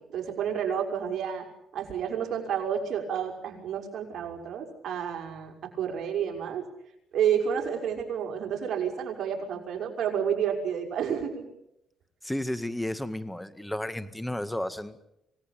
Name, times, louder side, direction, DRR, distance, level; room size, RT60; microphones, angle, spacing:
voice 1, 0.0-1.5 1.7-6.6 7.1-11.5, right 8 dB, 65° right, 2 dB, 6.0 m, -30 dB
voice 2, 12.2-15.0, left 1 dB, 5° left, 11 dB, 1.9 m, -32 dB
26.5 x 19.0 x 8.7 m, 0.83 s
cardioid pair, 90°, 0 cm